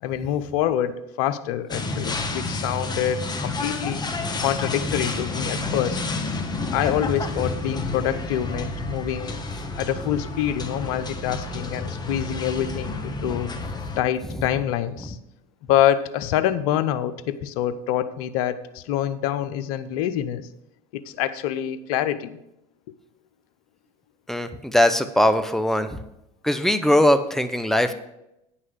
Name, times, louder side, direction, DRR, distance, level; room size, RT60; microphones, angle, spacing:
voice 1, 0.0-4.0 4.4-6.0 6.7-9.4 9.8-13.5 14.0-15.2 15.7-20.5 20.9-22.3, left 11 dB, 70° left, 13 dB, 0.7 m, -26 dB
sound 1, 1.7-14.0, left 3 dB, 20° left, 1.3 m, -30 dB
voice 2, 24.3-26.0 26.4-27.9, left 1 dB, ahead, 9 dB, 0.8 m, -20 dB
9.4 x 5.8 x 6.3 m, 0.86 s
hypercardioid pair, 85°, 19 cm